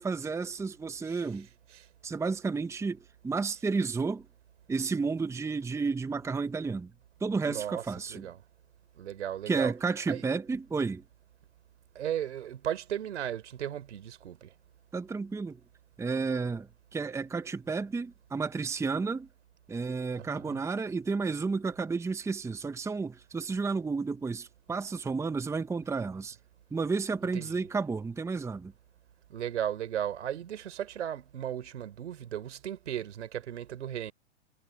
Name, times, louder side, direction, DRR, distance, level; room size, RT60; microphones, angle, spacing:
voice 1, 0.0-1.5 2.0-3.0 3.2-4.3 4.7-6.9 7.2-8.3 9.5-11.0 14.9-15.6 16.0-19.3 19.7-26.4 26.7-28.7, right 4 dB, 10° right, 1.1 m, -32 dB
voice 2, 7.5-7.8 8.1-8.4 9.0-9.7 10.1-10.2 11.9-14.5 20.2-20.6 27.3-27.7 29.3-34.1, right 10 dB, 75° right, 4.0 m, -36 dB
hypercardioid pair, 120°, 35 cm